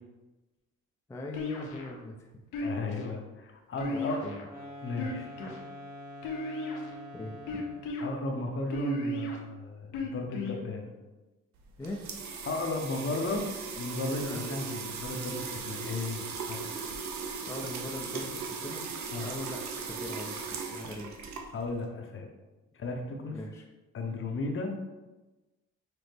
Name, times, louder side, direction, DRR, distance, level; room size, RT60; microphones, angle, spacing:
voice 1, 1.1-2.4 3.9-4.5 5.1-5.6 7.1-7.7 11.8-12.1 14.2-14.4 17.5-18.8 19.2-21.1 23.3-23.6, left 2 dB, 10° left, 0 dB, 0.4 m, -41 dB
sound 1, 1.3-2.0 2.5-3.1 3.8-4.5 4.9-5.6 6.2-6.9 7.5-8.0 8.7-9.4 9.9-10.6, left 1 dB, 90° left, 0.7 m, -34 dB
voice 2, 2.6-4.2 4.8-5.3 8.0-10.9 12.4-13.5 13.8-16.2 16.5-16.7 19.1-19.3 21.5-22.3 22.7-23.4 23.9-24.8, left 2 dB, 45° left, 3 dB, 0.7 m, -34 dB
sound 2, 4.4-8.0, equal, 30° right, 1.0 m, -45 dB
sound 3, 11.6-21.8, right 5 dB, 65° right, 0.6 m, -38 dB
5.8 x 2.0 x 3.3 m, 1.1 s
cardioid pair, 90°, 30 cm